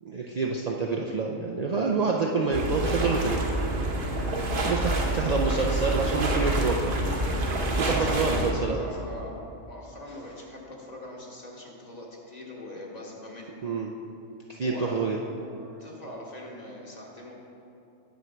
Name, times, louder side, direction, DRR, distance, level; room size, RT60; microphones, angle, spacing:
voice 1, 0.0-3.4 4.6-6.8 7.8-8.8 13.6-13.9 14.5-15.2 15.5-15.7, right 4 dB, 75° right, -1 dB, 0.3 m, -27 dB
sound 1, 2.5-8.5, right 1 dB, 45° right, 1.0 m, -27 dB
voice 2, 7.7-8.3 8.8-13.6 14.6-15.0 15.8-17.3, left 1 dB, 35° left, -2 dB, 1.2 m, -42 dB
9.4 x 4.5 x 6.1 m, 2.7 s
omnidirectional pair, 1.3 m